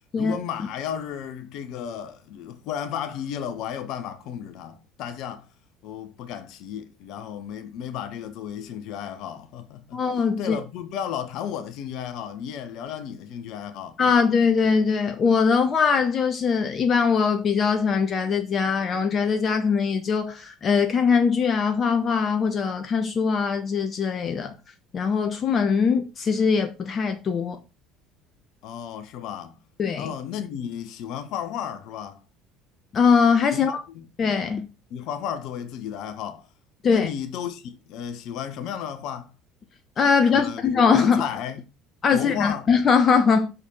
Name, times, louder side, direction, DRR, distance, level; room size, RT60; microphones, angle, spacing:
voice 1, 0.1-5.5 5.8-10.0 10.4-14.0 28.6-29.6 30.0-32.2 33.5-34.1 34.9-36.5 36.9-39.3 40.3-40.6 41.0-41.6 42.1-42.7, left 9 dB, 55° left, 1.2 m, -33 dB
voice 2, 9.9-10.6 14.0-24.5 24.9-27.6 29.8-30.1 32.9-33.8 34.2-34.7 36.8-37.1 40.0-41.3 42.0-43.5, left 5 dB, 40° left, 1.0 m, -21 dB
6.3 x 5.5 x 5.6 m
figure-of-eight pair, 60°, 0 cm